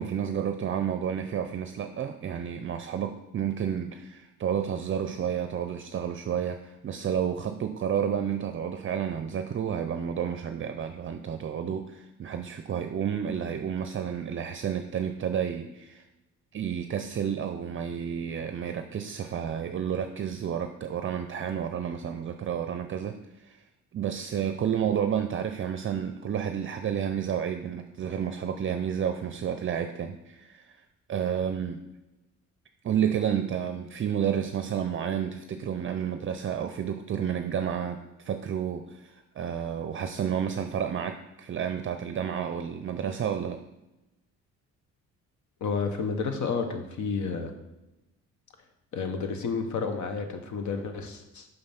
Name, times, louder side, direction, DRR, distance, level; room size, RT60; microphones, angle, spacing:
voice 1, 0.0-16.0 16.5-23.2 23.4-23.6 23.9-30.8 31.1-31.8 32.8-43.6, right 8 dB, 45° right, 7 dB, 0.5 m, -31 dB
voice 2, 45.6-47.5 48.9-51.5, left 5 dB, 70° left, 6 dB, 1.1 m, -31 dB
5.7 x 5.4 x 5.8 m, 0.97 s
cardioid pair, 90°, 30 cm